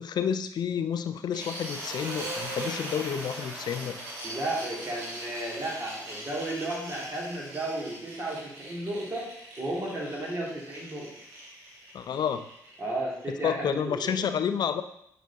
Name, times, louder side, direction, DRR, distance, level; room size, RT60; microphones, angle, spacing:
voice 1, 0.0-4.0 11.9-12.5 13.4-14.8, left 8 dB, 45° left, 10 dB, 0.5 m, -30 dB
sound 1, 1.3-13.3, right 1 dB, 65° right, 1.4 m, -40 dB
voice 2, 4.2-9.3 9.6-11.1 12.8-14.1, right 1 dB, 25° right, -4 dB, 2.6 m, -33 dB
8.8 x 4.1 x 2.8 m, 0.75 s
figure-of-eight pair, 40°, 10 cm